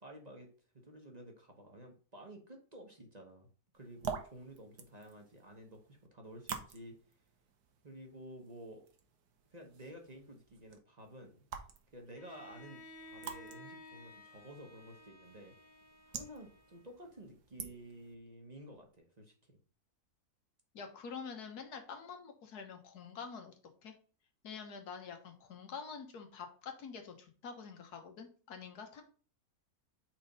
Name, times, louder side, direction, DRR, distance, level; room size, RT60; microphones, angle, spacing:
voice 1, 0.0-0.5 0.8-3.5 3.7-7.0 7.8-8.9 9.5-11.3 11.9-15.5 16.1-19.6, right 1 dB, 30° right, 2 dB, 1.1 m, -52 dB
sound 1, 3.7-18.1, right 7 dB, 80° right, 1.4 m, -49 dB
Bowed string instrument, 12.1-17.2, left 1 dB, 35° left, 1.5 m, -55 dB
voice 2, 20.7-23.5 23.8-23.9 24.4-29.0, left 6 dB, 90° left, 5 dB, 1.7 m, -47 dB
4.5 x 4.2 x 5.2 m, 0.39 s
omnidirectional pair, 1.6 m